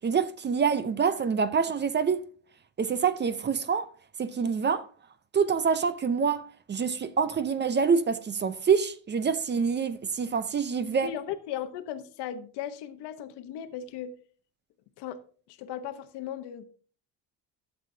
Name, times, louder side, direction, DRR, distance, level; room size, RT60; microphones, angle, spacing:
voice 1, 0.0-2.2 2.8-3.9 4.2-4.9 5.3-11.1, right 6 dB, 25° right, 0.6 m, -26 dB
voice 2, 11.0-14.1 15.0-15.2 15.5-16.6, left 10 dB, 80° left, 1.1 m, -37 dB
12.5 x 7.6 x 2.7 m
cardioid pair, 125°, 40 cm